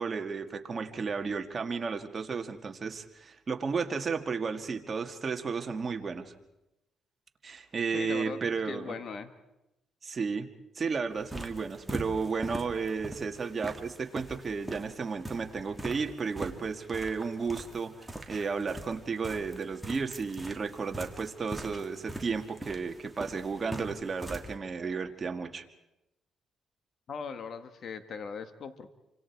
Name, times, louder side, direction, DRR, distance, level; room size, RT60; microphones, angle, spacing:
voice 1, 0.0-6.3 7.4-8.9 10.0-10.5 10.8-17.9 18.3-25.6, right 5 dB, 35° right, 5 dB, 2.1 m, -33 dB
voice 2, 7.9-8.4 8.7-9.3 27.1-28.9, left 5 dB, 55° left, 9 dB, 1.9 m, -39 dB
sound 1, 11.1-24.5, right 1 dB, 5° right, 2.6 m, -42 dB
29.0 x 25.5 x 4.8 m, 0.93 s
cardioid pair, 90°, 0 cm